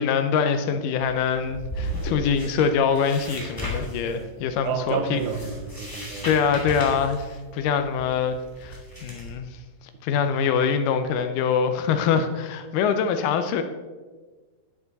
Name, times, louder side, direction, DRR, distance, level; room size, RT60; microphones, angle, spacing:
voice 1, 0.0-5.2 6.2-9.5 10.0-13.6, left 6 dB, 80° left, 1.9 m, -24 dB
sound 1, 1.0-9.3, equal, 10° left, 1.6 m, -36 dB
voice 2, 4.6-6.3, right 6 dB, 75° right, 2.5 m, -30 dB
11.5 x 7.9 x 4.0 m
omnidirectional pair, 4.4 m